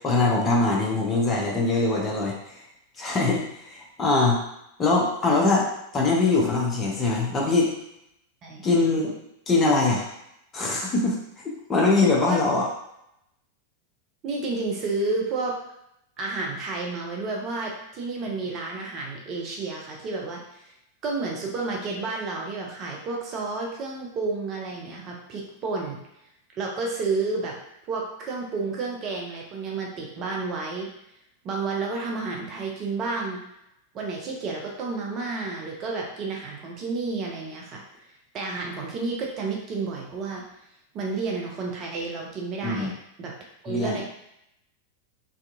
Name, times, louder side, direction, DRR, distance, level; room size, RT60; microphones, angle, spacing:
voice 1, 0.0-2.6 3.0-4.4 4.8-7.8 8.6-9.2 9.5-10.0 10.5-11.2 11.7-12.6 42.6-42.9 43.7-44.0, left 3 dB, 20° left, -3 dB, 0.6 m, -22 dB
voice 2, 14.2-15.5 16.2-20.6 21.0-26.0 26.5-27.6 27.8-30.9 31.4-33.4 33.9-37.8 38.3-40.4 40.9-42.9 43.2-43.3 43.6-44.0, right 3 dB, 35° right, -1 dB, 0.5 m, -31 dB
2.7 x 2.3 x 2.4 m, 0.80 s
figure-of-eight pair, 90°, 0 cm